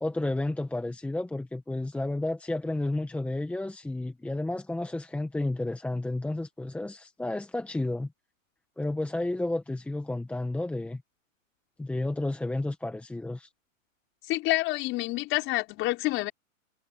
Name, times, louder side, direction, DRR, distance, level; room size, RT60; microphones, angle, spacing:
voice 1, 0.0-8.1 8.8-11.0 11.8-13.5, left 2 dB, 5° left, 1.4 m, -31 dB
voice 2, 14.3-16.3, left 19 dB, 30° left, 5.1 m, -28 dB
hypercardioid pair, 150°, 41 cm